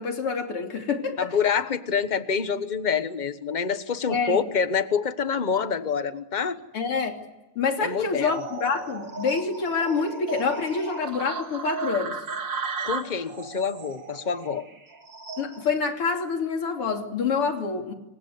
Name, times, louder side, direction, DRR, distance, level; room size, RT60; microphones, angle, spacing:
voice 1, 0.0-1.3 4.1-4.5 6.7-7.2 7.6-12.2 15.4-17.9, left 5 dB, 90° left, 3 dB, 4.0 m, -27 dB
voice 2, 1.2-6.6 7.8-8.4 12.8-14.7, left 6 dB, 30° left, 11 dB, 1.0 m, -26 dB
sound 1, 8.3-15.8, right 4 dB, 55° right, 3.2 m, -35 dB
27.0 x 25.0 x 8.1 m, 1.0 s
omnidirectional pair, 2.4 m